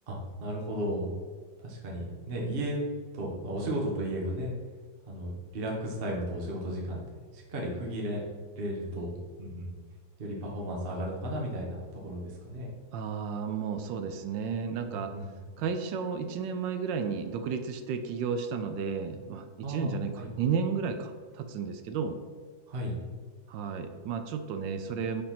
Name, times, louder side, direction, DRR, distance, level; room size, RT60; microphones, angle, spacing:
voice 1, 0.1-1.1 1.6-2.8 3.1-4.5 5.1-7.0 7.3-8.2 8.6-9.7 10.2-12.7 14.7-15.3 19.6-20.3 22.7-22.9, equal, 35° right, -2 dB, 1.1 m, -34 dB
voice 2, 12.9-15.1 15.6-22.2 23.5-25.2, right 6 dB, 75° right, 8 dB, 1.2 m, -33 dB
5.2 x 4.3 x 5.7 m, 1.5 s
omnidirectional pair, 2.2 m